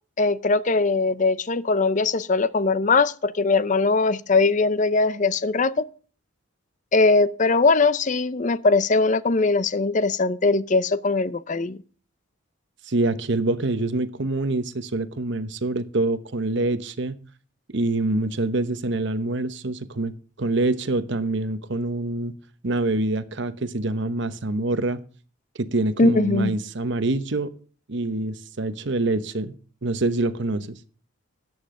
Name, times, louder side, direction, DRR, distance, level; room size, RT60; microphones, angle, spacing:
voice 1, 0.2-5.9 6.9-11.8 26.0-26.6, left 3 dB, 35° left, 0.6 m, -21 dB
voice 2, 12.9-17.2 17.7-20.1 20.4-22.3 22.6-25.0 25.6-27.5 27.9-29.5 29.8-30.8, right 2 dB, 60° right, 0.9 m, -25 dB
13.5 x 9.5 x 3.8 m
head